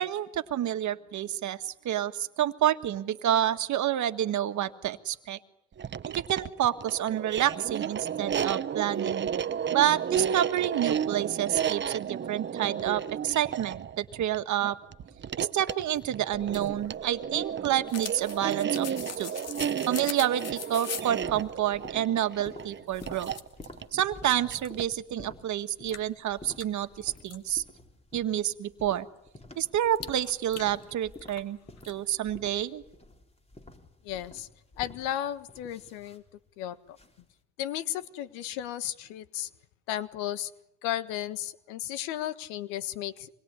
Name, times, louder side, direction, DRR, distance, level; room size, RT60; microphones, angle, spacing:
voice 1, 0.0-5.4 6.0-9.3 9.7-14.8 15.4-18.9 19.2-19.3 19.9-23.3 23.9-27.6 28.1-29.1 29.6-31.6 31.8-32.8, right 11 dB, 55° right, 10 dB, 1.7 m, -29 dB
sound 1, 5.7-25.0, right 8 dB, 30° right, 1.0 m, -33 dB
sound 2, 16.3-21.2 22.4-22.5 22.9-23.7 24.2-24.8 25.2-25.3 25.9-27.4 29.9-31.5 31.8-31.9, left 7 dB, 45° left, 2.5 m, -41 dB
sound 3, 21.1-37.3, left 2 dB, 15° left, 3.9 m, -51 dB
voice 2, 34.0-34.5 34.8-36.2 36.6-36.8 37.6-39.5 39.9-40.5 40.8-43.3, left 12 dB, 80° left, 13 dB, 1.7 m, -34 dB
26.0 x 21.0 x 9.8 m, 0.83 s
hypercardioid pair, 75°, 35 cm